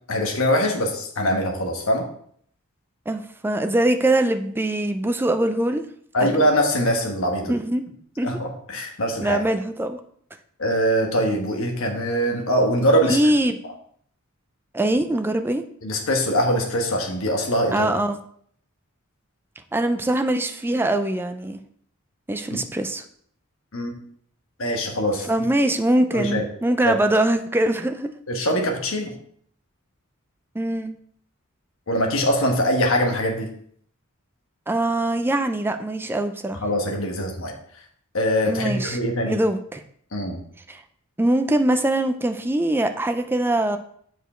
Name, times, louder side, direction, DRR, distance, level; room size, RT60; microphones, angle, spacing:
voice 1, 0.1-2.0 6.1-7.5 8.2-9.4 10.6-13.2 15.8-17.9 22.5-22.6 23.7-23.9 24.6-25.3 26.1-26.4 26.8-27.0 28.3-29.1 31.9-33.5 36.6-37.5 38.1-39.4 40.1-40.4, equal, 65° left, 2 dB, 1.3 m, -22 dB
voice 2, 3.1-5.9 6.2-6.3 7.5-7.8 8.2-8.4 9.2-10.0 13.1-13.6 14.7-15.6 17.7-18.2 19.7-21.6 22.3-23.0 25.2-28.1 30.5-30.9 34.7-36.6 38.5-39.0 39.2-39.8 40.7-40.8 41.2-43.8, right 1 dB, 10° right, 7 dB, 0.4 m, -22 dB
6.9 x 5.0 x 4.3 m, 0.63 s
head